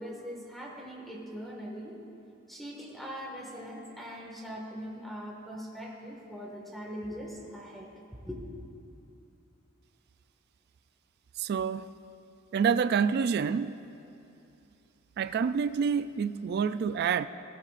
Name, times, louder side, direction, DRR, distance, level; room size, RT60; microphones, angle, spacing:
voice 1, 0.0-2.0 2.5-7.9 8.3-8.4, equal, ahead, 1.7 m, -41 dB
voice 2, 11.4-12.0 12.5-13.8 15.2-17.3, right 6 dB, 50° right, 0.3 m, -28 dB
17.5 x 17.0 x 2.5 m
head